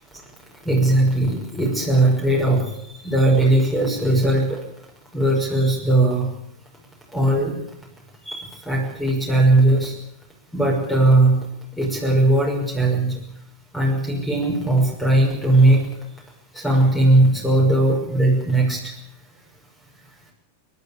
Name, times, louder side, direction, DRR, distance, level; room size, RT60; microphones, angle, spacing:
voice 1, 0.7-2.6 3.0-4.4 5.1-6.3 7.1-7.5 8.3-9.9 10.5-11.4 11.8-13.2 13.7-15.8 16.6-18.8, right 2 dB, 10° left, 1 dB, 6.1 m, -18 dB
30.0 x 12.0 x 8.9 m, 0.78 s
figure-of-eight pair, 90°, 0 cm